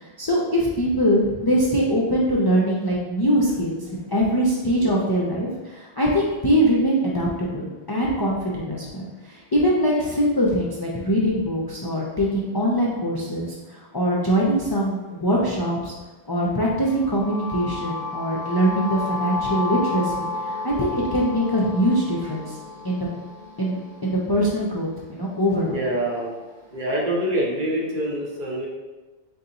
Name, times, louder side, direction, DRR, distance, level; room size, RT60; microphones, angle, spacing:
voice 1, 0.0-15.9 16.3-22.5 22.8-23.1 23.6-25.7, equal, 35° left, -4 dB, 0.4 m, -23 dB
sound 1, 16.8-24.8, left 2 dB, 80° right, 1.5 m, -32 dB
voice 2, 25.6-26.3 26.7-28.7, right 1 dB, 55° right, -3 dB, 0.9 m, -26 dB
3.9 x 3.8 x 2.8 m, 1.2 s
omnidirectional pair, 1.1 m